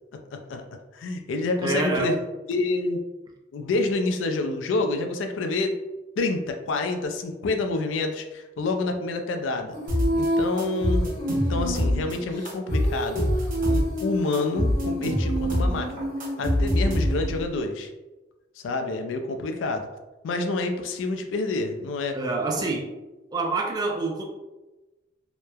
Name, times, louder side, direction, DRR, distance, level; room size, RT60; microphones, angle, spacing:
voice 1, 0.3-0.6 0.9-2.2 2.5-3.0 3.5-5.8 6.2-9.8 10.1-16.1 16.4-17.9 18.6-19.9 20.2-22.2 22.5-22.6, left 3 dB, 75° left, 6 dB, 0.3 m, -28 dB
voice 2, 1.6-2.1 22.1-22.9 23.3-24.2, right 3 dB, 20° right, 1 dB, 0.3 m, -26 dB
Female singing, 9.7-17.4, equal, 45° left, 0.9 m, -30 dB
sound 1, 9.9-10.3 10.6-12.1 12.4-14.0 14.3-17.4, left 1 dB, 45° right, 0.8 m, -25 dB
3.0 x 2.0 x 2.2 m, 1.1 s
head